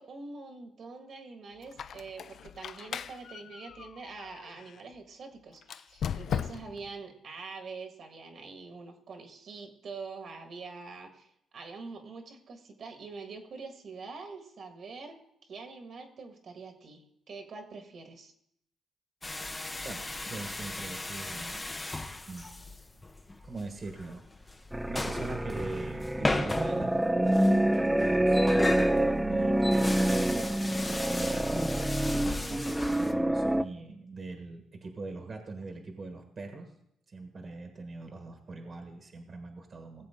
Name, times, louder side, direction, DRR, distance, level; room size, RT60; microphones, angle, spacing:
voice 1, 0.0-15.2 15.5-18.3, right 4 dB, 55° right, 5 dB, 1.6 m, -45 dB
Squeak, 1.6-4.8 5.6-6.9, left 8 dB, 60° left, 0.4 m, -38 dB
sound 1, 19.2-33.1, left 2 dB, 20° left, 0.8 m, -37 dB
voice 2, 19.8-21.7 22.3-22.6 23.4-24.5 24.9-27.4 27.9-30.5 30.8-36.7 37.1-40.1, right 3 dB, 40° right, 5 dB, 1.4 m, -42 dB
sound 2, 24.7-33.6, right 1 dB, 5° right, 0.5 m, -27 dB
18.0 x 7.6 x 3.7 m, 0.74 s
cardioid pair, 90°, 0 cm